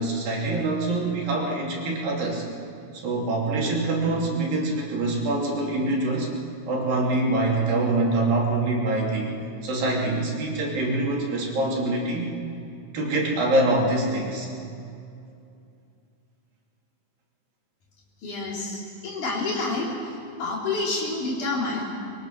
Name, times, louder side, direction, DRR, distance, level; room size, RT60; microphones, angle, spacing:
voice 1, 0.0-2.4 3.0-6.3 6.7-9.4 9.6-12.4 12.9-14.5, right 2 dB, 85° right, -2 dB, 4.8 m, -25 dB
voice 2, 18.2-20.1 20.4-21.8, left 3 dB, 65° left, -3 dB, 5.3 m, -28 dB
23.5 x 22.5 x 6.1 m, 2.5 s
omnidirectional pair, 4.0 m